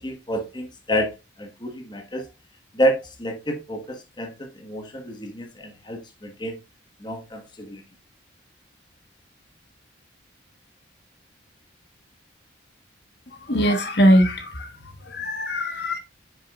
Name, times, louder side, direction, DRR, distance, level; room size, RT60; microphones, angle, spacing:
voice 1, 0.0-2.3 2.7-6.6 7.0-7.8, equal, 25° left, 1.4 m, -29 dB
voice 2, 13.5-14.7 15.1-16.0, equal, 60° left, 1.4 m, -20 dB
8.8 x 6.5 x 2.4 m
head